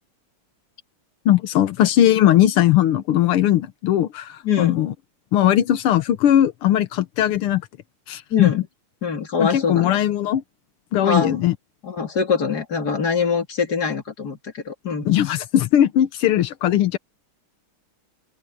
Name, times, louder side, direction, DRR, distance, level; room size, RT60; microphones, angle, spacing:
voice 1, 1.3-4.9 5.3-7.6 8.1-8.5 9.4-10.4 10.9-11.5 15.1-17.0, left 12 dB, 90° left, 1.9 m, -19 dB
voice 2, 4.4-4.8 8.3-8.6 9.0-10.0 11.0-11.4 11.8-15.4, left 6 dB, 50° left, 3.1 m, -24 dB
open air
omnidirectional pair, 2.3 m